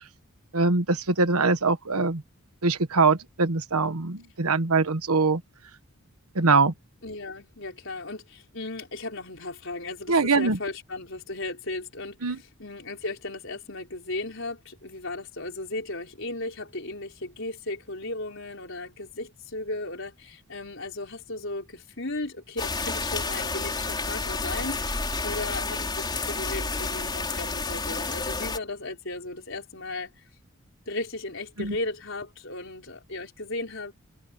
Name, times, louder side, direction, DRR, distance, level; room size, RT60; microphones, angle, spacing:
voice 1, 0.5-2.2 2.6-5.4 6.3-6.7 10.1-10.6 12.2-12.4 31.6-31.7, right 3 dB, 85° right, 1.4 m, -23 dB
voice 2, 7.0-30.1 30.9-33.9, left 2 dB, 60° left, 5.2 m, -36 dB
sound 1, 22.6-28.6, left 3 dB, 20° left, 4.3 m, -30 dB
head